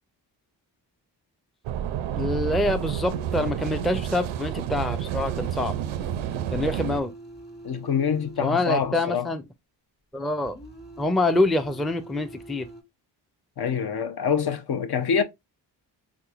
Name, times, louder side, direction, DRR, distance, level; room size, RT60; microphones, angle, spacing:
sound 1, 1.6-7.0, right 10 dB, 80° right, 0.5 m, -30 dB
voice 1, 2.2-5.8 6.5-7.1 8.4-9.4 10.1-10.6 11.0-12.7, left 2 dB, ahead, 0.4 m, -25 dB
sound 2, 2.4-8.9 10.4-12.8, right 2 dB, 20° left, 1.4 m, -44 dB
voice 2, 7.6-9.3 13.6-15.2, left 7 dB, 55° left, 0.6 m, -25 dB
3.5 x 2.9 x 2.4 m
supercardioid pair, 45°, 48 cm